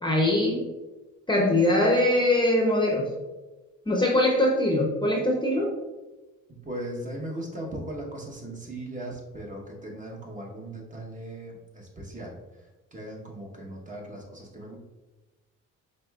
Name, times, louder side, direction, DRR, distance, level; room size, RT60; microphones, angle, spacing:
voice 1, 0.0-0.6 1.3-3.1 3.9-5.7, left 1 dB, 15° left, -1 dB, 0.7 m, -22 dB
voice 2, 6.5-12.4 12.9-14.8, right 1 dB, 25° right, -1 dB, 1.0 m, -38 dB
5.1 x 3.2 x 2.3 m, 1.2 s
cardioid pair, 85°, 31 cm